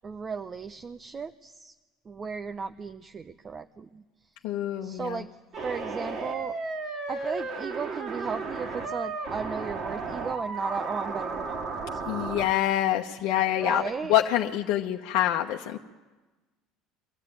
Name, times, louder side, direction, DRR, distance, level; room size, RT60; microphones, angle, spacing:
voice 1, 0.0-1.7 2.1-4.0 4.8-5.3 5.6-6.6 7.1-12.4 13.6-14.1, right 5 dB, 35° right, 9 dB, 0.8 m, -35 dB
voice 2, 4.4-5.2 12.1-15.8, left 12 dB, 70° left, 0 dB, 1.0 m, -26 dB
sound 1, 5.5-12.5, right 4 dB, 50° right, 3.0 m, -34 dB
24.0 x 13.5 x 9.6 m, 1.2 s
hypercardioid pair, 80°, 0 cm